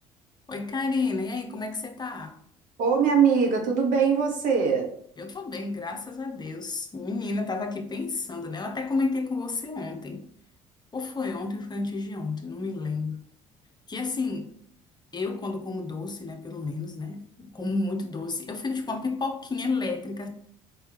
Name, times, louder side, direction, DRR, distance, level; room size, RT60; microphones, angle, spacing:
voice 1, 0.5-2.4 5.2-10.3 10.9-13.2 13.9-14.5 15.1-20.3, left 3 dB, 30° left, 0.8 m, -31 dB
voice 2, 2.8-4.9, right 6 dB, 60° right, 1.2 m, -22 dB
4.6 x 3.2 x 3.3 m
hypercardioid pair, 60°, 15 cm